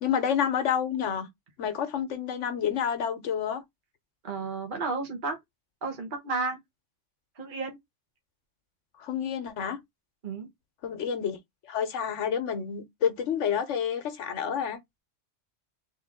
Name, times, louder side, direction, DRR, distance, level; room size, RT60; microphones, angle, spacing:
voice 1, 0.0-1.3 1.6-3.6 9.0-9.8 10.8-11.4 11.6-14.8, left 8 dB, 70° left, 1.2 m, -29 dB
voice 2, 4.2-5.4 5.8-6.6 7.4-7.8 10.2-10.5, right 3 dB, 40° right, 1.2 m, -32 dB
3.6 x 3.3 x 3.5 m
omnidirectional pair, 1.3 m